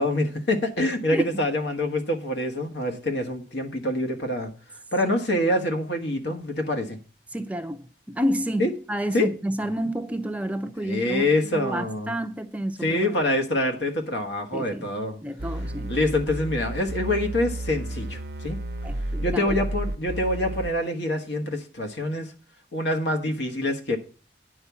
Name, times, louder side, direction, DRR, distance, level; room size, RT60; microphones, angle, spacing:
voice 1, 0.0-4.5 4.9-7.0 8.6-8.7 9.1-9.3 10.8-12.1 12.8-15.2 15.9-18.6 19.2-22.3 22.7-24.0, left 1 dB, 75° left, 1.5 m, -26 dB
voice 2, 1.1-1.4 5.0-5.2 7.3-13.2 14.5-14.9 15.2-16.0 18.8-19.6, equal, 10° right, 0.5 m, -30 dB
sound 1, 15.4-20.7, right 1 dB, 65° right, 0.7 m, -32 dB
9.8 x 5.6 x 7.0 m
head